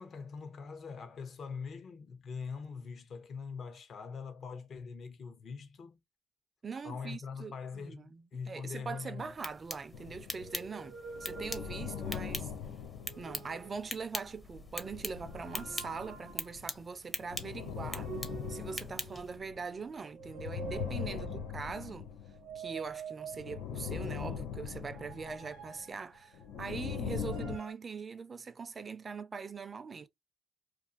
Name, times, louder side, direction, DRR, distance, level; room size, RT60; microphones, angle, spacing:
voice 1, 0.0-6.0 6.8-9.3 20.9-21.5, left 5 dB, 55° left, 0.7 m, -43 dB
voice 2, 6.6-12.5 13.2-18.1 18.5-22.1 22.6-30.1, right 5 dB, 35° right, 0.4 m, -42 dB
sound 1, 8.9-9.8 10.3-12.3 12.9-13.9 15.2-16.6 17.8-19.5 20.0-21.7 22.3-23.9 24.8-26.6 27.1-27.7, right 6 dB, 90° right, 0.7 m, -47 dB
sound 2, 9.2-19.4, left 2 dB, 20° left, 0.6 m, -44 dB
sound 3, 9.9-10.7 11.0-13.8 14.3-16.8 17.2-19.8 20.2-22.8 23.3-25.8 26.3-27.6, left 7 dB, 90° left, 0.4 m, -41 dB
2.5 x 2.4 x 2.5 m
cardioid pair, 90°, 0 cm